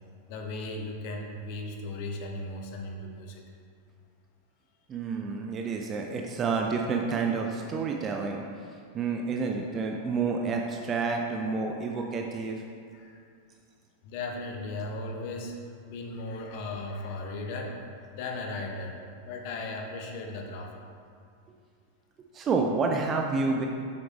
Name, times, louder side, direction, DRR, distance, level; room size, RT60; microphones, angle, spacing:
voice 1, 0.3-3.4 12.0-12.1 12.9-13.2 14.0-15.5 15.9-17.8 18.1-19.0 19.3-20.7, left 2 dB, 45° left, 2 dB, 1.0 m, -36 dB
voice 2, 4.9-8.4 8.9-12.6 22.3-23.7, right 4 dB, 25° right, 2 dB, 0.6 m, -29 dB
7.9 x 7.1 x 3.5 m, 2.3 s
figure-of-eight pair, 90°, 0 cm